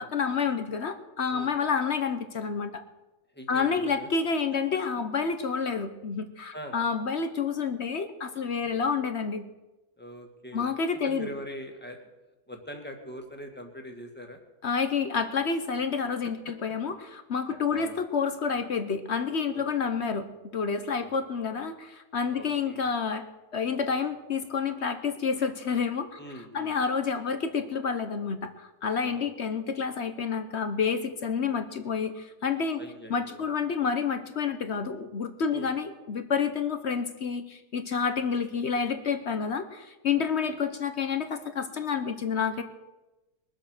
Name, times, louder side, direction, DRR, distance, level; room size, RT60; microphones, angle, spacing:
voice 1, 0.0-2.8 3.5-9.4 10.5-11.3 14.6-20.3 20.5-23.3 23.5-26.2 26.5-32.8 33.1-42.6, left 6 dB, 50° left, 9 dB, 1.0 m, -29 dB
voice 2, 3.3-4.1 6.5-6.8 8.6-8.8 10.0-10.7 11.0-12.1 12.5-14.4 16.2-16.5 17.7-18.0 19.5-19.9 21.0-21.1 22.3-22.8 26.2-26.7 29.0-29.3 32.8-33.4 35.5-35.7 40.2-40.6, equal, 5° left, 3 dB, 1.9 m, -43 dB
22.0 x 7.8 x 6.5 m, 1.1 s
omnidirectional pair, 1.7 m